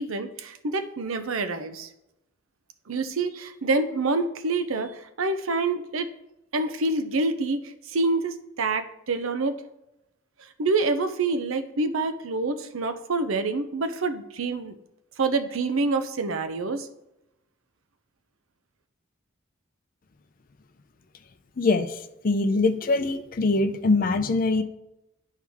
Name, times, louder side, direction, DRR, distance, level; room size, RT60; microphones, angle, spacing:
voice 1, 0.0-1.9 2.9-6.1 6.5-9.6 10.6-14.7 15.2-16.9, right 3 dB, 75° right, 9 dB, 0.6 m, -27 dB
voice 2, 21.6-24.6, left 3 dB, 45° left, 8 dB, 0.5 m, -23 dB
10.0 x 4.6 x 3.5 m, 0.90 s
head